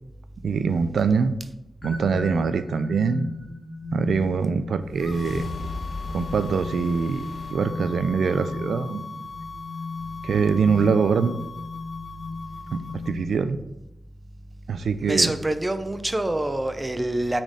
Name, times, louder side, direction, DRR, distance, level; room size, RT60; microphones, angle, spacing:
voice 1, 0.4-1.3 1.8-3.3 3.9-5.5 6.1-9.0 10.2-11.5 12.7-13.6 14.7-15.3, right 5 dB, 80° right, 12 dB, 0.5 m, -24 dB
sound 1, 1.8-13.5, left 3 dB, 10° left, 2.3 m, -37 dB
sound 2, 4.6-9.0, left 2 dB, 80° left, 1.6 m, -38 dB
sound 3, 5.0-13.1, left 4 dB, 50° left, 0.6 m, -40 dB
voice 2, 15.0-17.4, right 1 dB, 20° right, 9 dB, 0.7 m, -25 dB
9.3 x 4.4 x 5.0 m, 0.88 s
wide cardioid pair, 90°, 0 cm